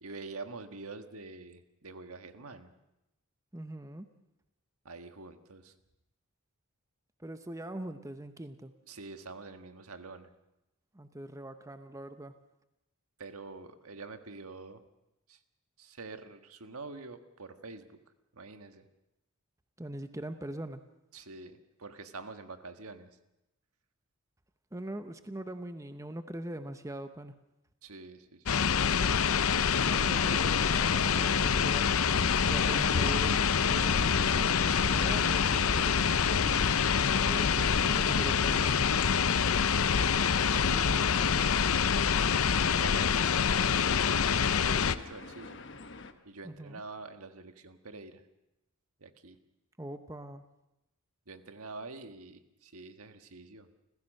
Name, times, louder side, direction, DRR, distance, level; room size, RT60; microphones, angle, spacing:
voice 1, 0.0-2.7 4.8-5.7 8.9-10.3 13.2-14.8 15.3-15.4 15.8-18.0 18.3-18.8 21.1-23.1 27.8-28.7 40.4-42.0 42.8-44.0 44.6-45.6 46.2-48.2 49.0-49.4 51.3-53.7, right 3 dB, 80° right, 8 dB, 1.5 m, -46 dB
voice 2, 3.5-4.1 7.2-8.7 10.9-12.3 19.8-20.8 24.7-27.3 29.7-32.1 32.4-36.7 37.2-38.9 46.4-46.8 49.8-50.4, right 1 dB, 15° right, 9 dB, 0.8 m, -41 dB
sound 1, 28.5-44.9, left 6 dB, 75° left, 0.7 m, -26 dB
sound 2, 30.3-46.1, left 3 dB, 55° left, 1.2 m, -47 dB
29.5 x 15.5 x 6.5 m, 0.90 s
head